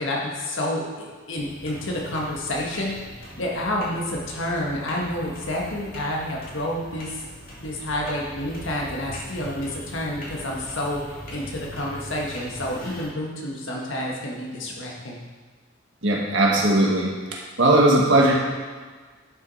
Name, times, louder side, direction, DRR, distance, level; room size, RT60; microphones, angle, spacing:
voice 1, 0.0-7.2 7.6-15.2, left 1 dB, 75° left, -2 dB, 1.6 m, -29 dB
sound 1, 1.3-13.0, equal, 45° left, 2.6 m, -41 dB
voice 2, 16.0-18.3, right 1 dB, 70° right, -2 dB, 1.9 m, -19 dB
11.0 x 6.3 x 4.2 m, 1.5 s
head